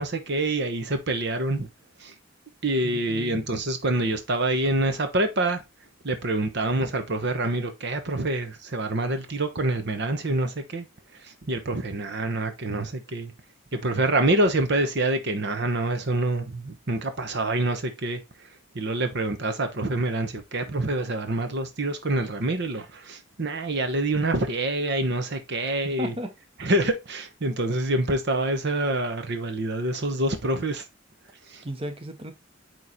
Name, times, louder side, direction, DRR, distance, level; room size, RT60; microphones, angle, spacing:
voice 1, 0.0-1.7 2.0-2.1 2.6-5.6 6.0-10.8 11.2-13.3 13.7-18.2 18.7-26.1 26.6-30.8 31.5-31.6, right 2 dB, 60° right, 1.0 m, -26 dB
voice 2, 3.1-3.5 26.0-26.3 31.6-32.3, equal, 30° right, 1.1 m, -34 dB
9.3 x 3.2 x 4.1 m
head